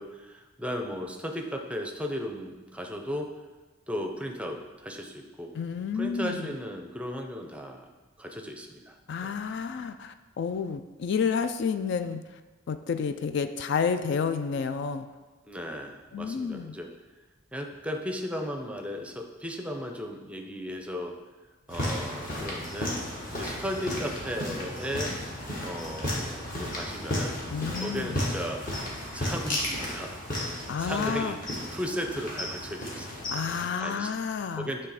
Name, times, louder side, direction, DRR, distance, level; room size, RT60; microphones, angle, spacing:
voice 1, 0.0-3.3 3.9-5.5 5.9-7.9 8.2-9.4 15.4-16.9 17.5-21.2 21.7-23.0 23.3-25.1 25.6-27.4 27.8-28.7 29.1-30.2 30.6-31.4 31.7-33.3 33.8-34.1 34.6-34.9, equal, 5° right, 3 dB, 0.5 m, -36 dB
voice 2, 5.5-6.5 9.1-12.4 12.7-15.1 16.1-16.8 27.5-28.2 30.7-31.4 33.3-34.7, left 6 dB, 60° left, 10 dB, 0.3 m, -30 dB
sound 1, 21.7-33.6, left 1 dB, 45° left, 1.6 m, -34 dB
9.1 x 3.3 x 4.9 m, 1.2 s
head